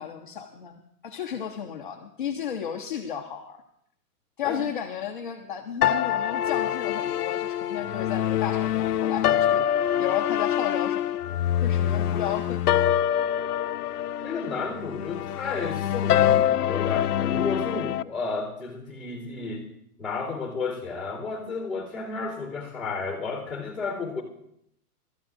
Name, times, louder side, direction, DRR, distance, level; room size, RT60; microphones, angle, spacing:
voice 1, 0.0-3.6 4.4-11.1 11.6-12.9, left 9 dB, 35° left, 1 dB, 0.7 m, -33 dB
sound 1, 5.8-18.0, left 11 dB, 75° left, 0.7 m, -25 dB
voice 2, 14.2-19.7 20.0-24.2, left 4 dB, 5° right, -8 dB, 2.7 m, -32 dB
25.0 x 13.5 x 2.5 m, 0.72 s
hypercardioid pair, 180°, 46 cm